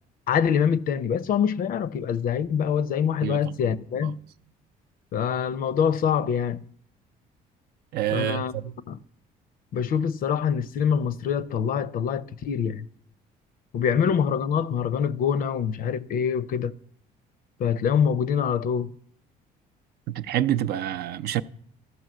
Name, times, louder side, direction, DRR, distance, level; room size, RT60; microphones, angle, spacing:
voice 1, 0.3-4.2 5.1-6.6 8.1-8.5 8.9-9.0 9.7-12.9 13.7-16.7 17.6-18.9, left 7 dB, 55° left, 0.5 m, -25 dB
voice 2, 3.2-3.5 3.9-4.1 7.9-8.7 20.1-21.4, right 12 dB, 70° right, 0.5 m, -27 dB
13.0 x 5.5 x 7.7 m
cardioid pair, 110°, 17 cm